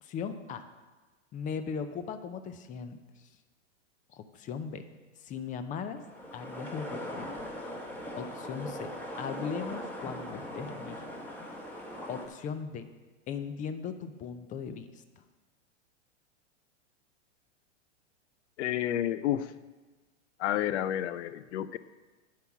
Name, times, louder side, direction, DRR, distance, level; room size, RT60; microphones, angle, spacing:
voice 1, 0.0-0.7 1.3-3.3 4.1-4.8 5.2-6.0 6.3-7.3 8.2-8.9 9.2-11.0 12.1-12.9 13.3-15.0, left 6 dB, 20° left, 10 dB, 0.5 m, -38 dB
sound 1, 6.0-12.3, equal, 5° left, 1.2 m, -40 dB
voice 2, 18.6-19.5 20.4-21.8, left 11 dB, 70° left, 15 dB, 0.6 m, -30 dB
9.3 x 4.7 x 7.1 m, 1.3 s
hypercardioid pair, 125°, 35 cm